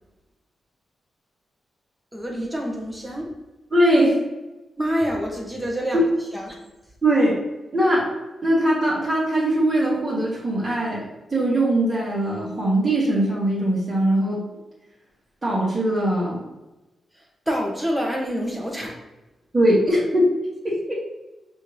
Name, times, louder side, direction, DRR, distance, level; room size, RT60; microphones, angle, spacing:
voice 1, 2.1-3.3 4.8-6.0 6.3-6.6 17.5-18.9, equal, 5° right, -1 dB, 1.2 m, -27 dB
voice 2, 3.7-4.2 5.9-6.0 7.0-7.4 7.7-11.0 11.3-14.4 15.4-16.4 19.5-20.4 20.6-21.0, right 1 dB, 25° right, -8 dB, 1.6 m, -21 dB
5.5 x 2.7 x 3.3 m, 1.0 s
cardioid pair, 90°, 0 cm